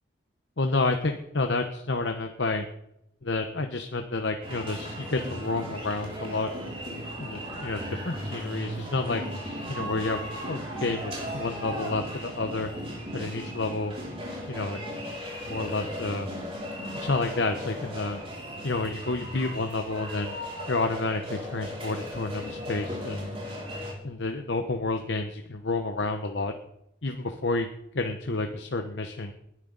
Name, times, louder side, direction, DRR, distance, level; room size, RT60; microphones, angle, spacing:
voice 1, 0.6-2.6 3.2-6.5 7.2-9.2 9.7-12.7 13.1-13.9 14.5-14.8 15.4-16.3 17.0-18.2 18.6-20.4 20.7-23.3 24.0-26.5 27.0-27.7 27.9-29.3, left 3 dB, 65° left, 6 dB, 1.0 m, -30 dB
sound 1, 4.4-23.9, equal, 30° right, 5.6 m, -36 dB
20.0 x 11.0 x 4.0 m, 0.80 s
head